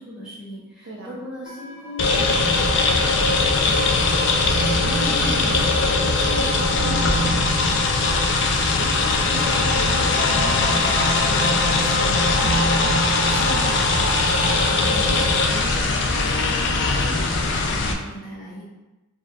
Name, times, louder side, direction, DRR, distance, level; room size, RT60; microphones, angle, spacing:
voice 1, 0.0-4.6 8.4-18.6, equal, 5° right, -10 dB, 1.2 m, -38 dB
sound 1, 1.5-14.6, right 1 dB, 30° left, 0.7 m, -36 dB
sound 2, 2.0-17.9, left 3 dB, 60° left, 0.4 m, -20 dB
voice 2, 4.8-7.8 14.7-15.1, right 1 dB, 70° right, -4 dB, 0.9 m, -35 dB
4.4 x 3.3 x 2.6 m, 1.1 s
head